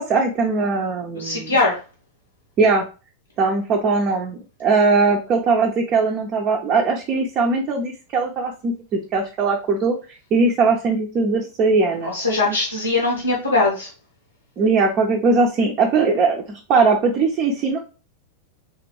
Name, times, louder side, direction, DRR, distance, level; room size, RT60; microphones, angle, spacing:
voice 1, 0.0-1.5 2.6-2.9 3.4-10.0 10.3-12.1 14.6-17.8, right 4 dB, 35° right, 0 dB, 0.7 m, -20 dB
voice 2, 1.2-1.8 12.0-13.9, left 3 dB, 85° left, -2 dB, 1.0 m, -21 dB
3.8 x 3.3 x 3.1 m, 0.32 s
figure-of-eight pair, 90°, 0 cm